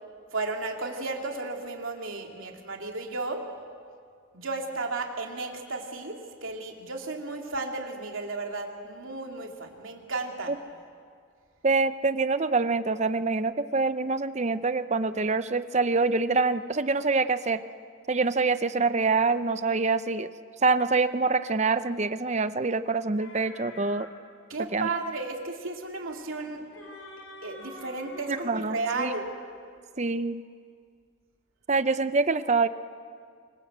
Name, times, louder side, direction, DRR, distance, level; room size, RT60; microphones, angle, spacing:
voice 1, 0.3-3.4 4.3-10.5 24.5-26.6 27.4-29.3, right 3 dB, 70° right, 2 dB, 2.8 m, -34 dB
voice 2, 11.6-17.6 18.1-20.3 20.6-24.1 24.7-24.9 28.3-29.2 30.0-30.4 31.7-32.7, right 4 dB, 35° right, 12 dB, 0.6 m, -25 dB
sound 1, 23.2-24.1 26.4-28.6, left 2 dB, 75° left, 4.3 m, -45 dB
25.5 x 22.5 x 8.0 m, 2.1 s
head